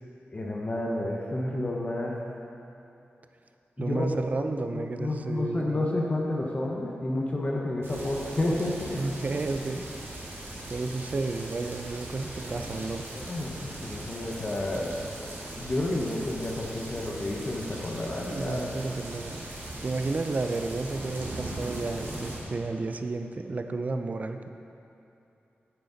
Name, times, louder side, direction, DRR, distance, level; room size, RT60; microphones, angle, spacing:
voice 1, 0.3-2.2 3.8-4.1 4.4-9.0 13.1-14.9 15.6-18.7, left 1 dB, 35° left, -2 dB, 1.0 m, -30 dB
voice 2, 3.8-5.9 9.0-9.8 10.7-13.0 18.3-19.4 19.8-24.5, right 3 dB, 40° right, 7 dB, 0.5 m, -32 dB
sound 1, 7.8-22.4, right 1 dB, 80° right, 2.0 m, -39 dB
9.2 x 9.1 x 4.0 m, 2.8 s
wide cardioid pair, 115°, 4 cm